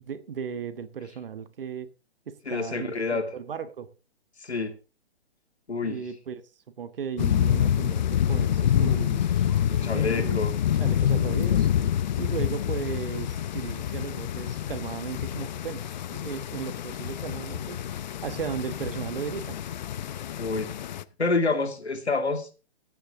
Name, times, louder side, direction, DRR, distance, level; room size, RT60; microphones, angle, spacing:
voice 1, 0.0-1.9 2.3-3.9 5.8-6.4 6.8-10.4 10.8-11.7 12.2-15.8 16.1-17.8 18.2-19.6, right 7 dB, 60° right, 1.5 m, -36 dB
voice 2, 2.4-3.3 4.4-4.7 5.7-6.0 9.7-10.5 20.4-20.7 21.2-22.5, left 3 dB, 85° left, 2.5 m, -28 dB
sound 1, 7.2-21.0, left 10 dB, 45° left, 0.7 m, -27 dB
14.0 x 9.8 x 3.7 m
figure-of-eight pair, 135°, 32 cm